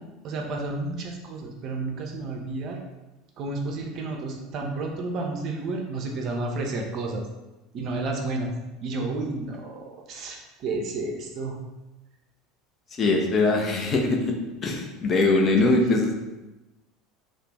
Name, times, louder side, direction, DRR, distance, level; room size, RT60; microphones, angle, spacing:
voice 1, 0.2-2.8 3.4-7.2 7.7-8.5 8.8-11.6 15.6-16.2, right 2 dB, 40° right, 2 dB, 0.4 m, -31 dB
voice 2, 12.9-14.3 14.6-16.2, left 2 dB, 30° left, 2 dB, 0.4 m, -22 dB
2.4 x 2.1 x 3.1 m, 1.0 s
figure-of-eight pair, 70°, 0 cm